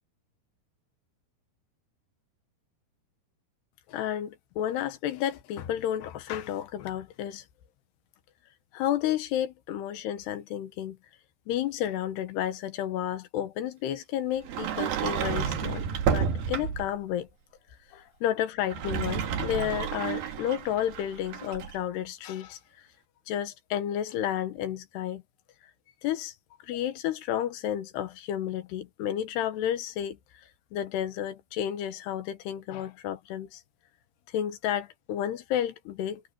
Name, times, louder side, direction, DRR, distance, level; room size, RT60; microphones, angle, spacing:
voice 1, 3.9-7.4 8.7-11.0 11.5-17.3 17.9-22.6 23.3-25.2 26.0-26.3 26.6-30.2 30.7-33.6 34.3-36.2, left 11 dB, 80° left, 3.3 m, -31 dB
Sliding door, 14.4-17.0 18.6-21.8, right 7 dB, 65° right, 3.6 m, -30 dB
omnidirectional pair, 4.8 m